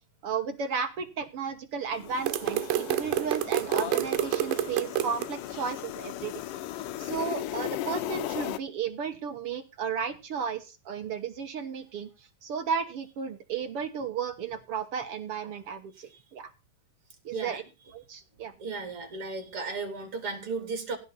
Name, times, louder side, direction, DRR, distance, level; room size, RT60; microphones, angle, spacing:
voice 1, 0.2-6.3 7.0-16.5 17.2-17.6 17.9-18.5, right 6 dB, 60° right, 7 dB, 1.6 m, -34 dB
sound 1, 1.9-8.6, left 13 dB, 75° left, 2.3 m, -36 dB
sound 2, 2.3-5.3, right 13 dB, 85° right, 2.5 m, -28 dB
voice 2, 18.6-21.0, right 4 dB, 40° right, 5 dB, 4.1 m, -35 dB
16.0 x 5.4 x 6.8 m, 0.29 s
omnidirectional pair, 3.9 m